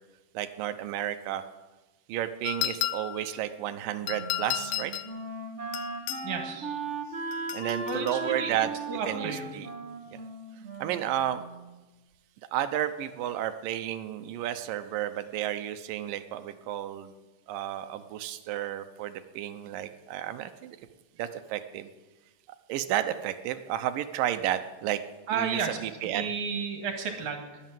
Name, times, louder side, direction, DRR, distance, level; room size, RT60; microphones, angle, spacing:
voice 1, 0.3-1.4 2.1-4.9 7.5-8.7 9.1-9.7 10.1-10.2 10.8-11.4 12.5-17.1 17.5-20.8 21.2-21.9 22.7-25.0 25.3-26.3, right 12 dB, 85° right, 10 dB, 2.6 m, -32 dB
sound 1, 2.5-3.3 4.1-5.1 5.7-6.3 7.3-8.2, left 14 dB, 80° left, 2.1 m, -33 dB
Wind instrument woodwind instrument, 4.0-11.8, right 3 dB, 30° right, 1.4 m, -38 dB
voice 2, 6.2-6.8 7.9-8.6 8.9-9.5 25.3-25.8 26.0-27.6, right 5 dB, 65° right, 4 dB, 3.3 m, -32 dB
21.5 x 8.8 x 7.5 m, 1.2 s
omnidirectional pair, 3.9 m